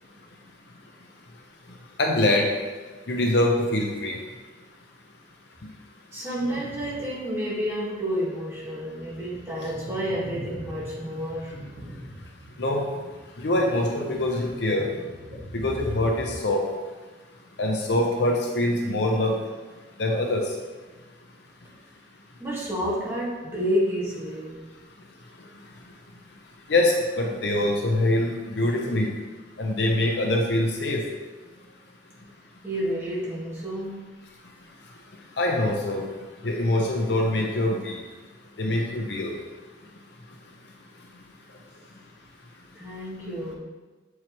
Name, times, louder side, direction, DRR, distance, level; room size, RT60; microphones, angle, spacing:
voice 1, 2.0-2.5 3.1-4.2 12.6-12.8 13.4-14.9 15.5-16.6 17.6-19.4 20.0-20.4 26.7-28.3 28.6-29.1 29.6-31.0 35.4-36.0 36.4-38.0 38.6-39.3, left 1 dB, 65° left, 0 dB, 0.7 m, -24 dB
voice 2, 6.1-11.5 22.4-24.6 32.6-34.1 42.7-43.6, equal, 15° right, -7 dB, 1.6 m, -30 dB
sound 1, 6.3-7.2 7.7-7.8 8.4-16.3, equal, 50° right, 1.7 m, -41 dB
7.1 x 4.8 x 3.0 m, 1.3 s
head